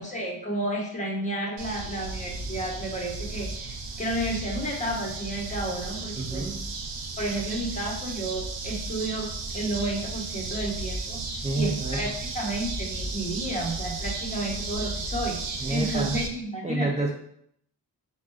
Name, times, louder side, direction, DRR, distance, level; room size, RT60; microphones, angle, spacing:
voice 1, 0.0-6.4 7.2-11.2 11.5-16.9, right 1 dB, 15° left, -2 dB, 1.2 m, -31 dB
sound 1, 1.6-16.3, right 3 dB, 80° right, 0.6 m, -34 dB
voice 2, 6.1-6.6 11.4-12.2 15.6-16.2 16.6-17.1, right 3 dB, 15° right, 1 dB, 0.4 m, -28 dB
4.4 x 2.3 x 2.3 m, 0.70 s
cardioid pair, 50°, 43 cm